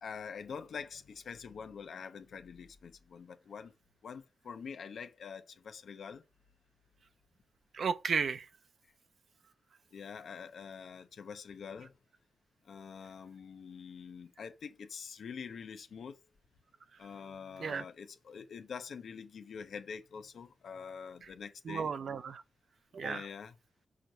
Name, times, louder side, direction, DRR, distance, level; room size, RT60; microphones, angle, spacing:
voice 1, 0.0-3.7 4.0-6.2 9.9-11.9 12.6-16.2 17.0-21.9 23.0-23.6, left 6 dB, 80° left, 0.9 m, -45 dB
voice 2, 7.7-8.5 17.6-17.8 21.7-22.4 22.9-23.2, right 6 dB, 75° right, 0.8 m, -33 dB
6.3 x 4.5 x 6.6 m
cardioid pair, 60°, 0 cm